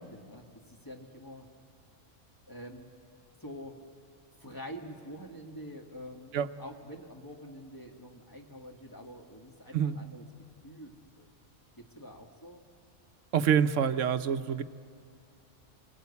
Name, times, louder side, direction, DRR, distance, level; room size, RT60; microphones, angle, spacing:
voice 1, 0.1-1.5 2.5-2.9 3.4-3.8 4.4-6.3 6.6-10.2 10.6-11.3 11.8-12.6, equal, 15° left, 1 dB, 1.8 m, -46 dB
voice 2, 13.3-14.6, right 8 dB, 80° right, 11 dB, 1.2 m, -26 dB
29.0 x 20.5 x 8.4 m, 2.4 s
omnidirectional pair, 1.3 m